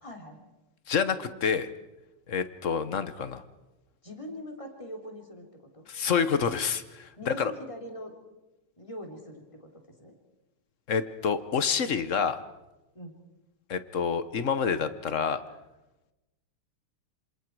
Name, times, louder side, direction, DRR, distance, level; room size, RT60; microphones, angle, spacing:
voice 1, 0.0-0.4 4.0-5.9 7.2-8.1 8.8-10.1 12.9-13.2, equal, 15° left, 2 dB, 3.4 m, -42 dB
voice 2, 0.9-1.7 2.3-3.4 5.9-7.5 10.9-12.4 13.7-15.4, left 6 dB, 50° left, 12 dB, 1.0 m, -28 dB
27.0 x 26.5 x 4.7 m, 1.0 s
omnidirectional pair, 2.4 m